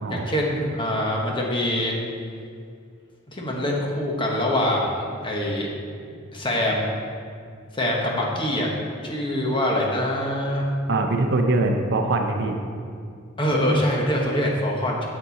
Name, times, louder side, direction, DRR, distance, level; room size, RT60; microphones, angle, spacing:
voice 1, 0.1-1.9 3.3-5.7 6.3-6.9 7.8-8.7 9.0-10.7 13.4-15.1, left 1 dB, 25° left, -2 dB, 1.3 m, -24 dB
voice 2, 10.9-12.6, right 2 dB, 55° right, 4 dB, 0.7 m, -22 dB
7.8 x 7.4 x 4.1 m, 2.3 s
head